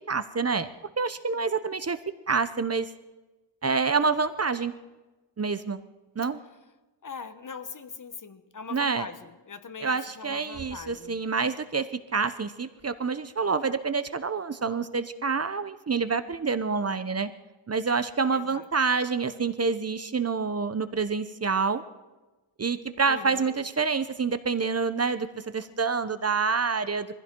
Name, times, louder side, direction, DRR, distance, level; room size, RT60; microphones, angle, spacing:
voice 1, 0.1-0.7 1.0-2.0 2.3-2.9 3.6-4.7 5.4-5.8 6.2-6.4 8.7-9.1 9.8-17.3 17.7-21.8 22.6-27.1, right 5 dB, 35° right, 12 dB, 0.8 m, -27 dB
voice 2, 7.0-11.2 18.3-18.7 23.1-23.6, left 5 dB, 45° left, 11 dB, 1.1 m, -41 dB
23.5 x 15.5 x 3.8 m, 1.2 s
wide cardioid pair, 90°, 45 cm